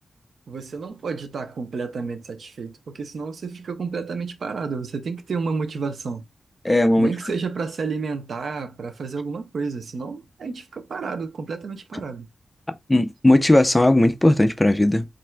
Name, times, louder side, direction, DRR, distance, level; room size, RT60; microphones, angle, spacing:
voice 1, 0.5-6.2 7.0-12.3, right 4 dB, 65° right, 0.7 m, -30 dB
voice 2, 6.6-7.1 12.9-15.1, left 1 dB, 10° left, 0.4 m, -17 dB
7.4 x 2.5 x 2.2 m
wide cardioid pair, 160°, 0 cm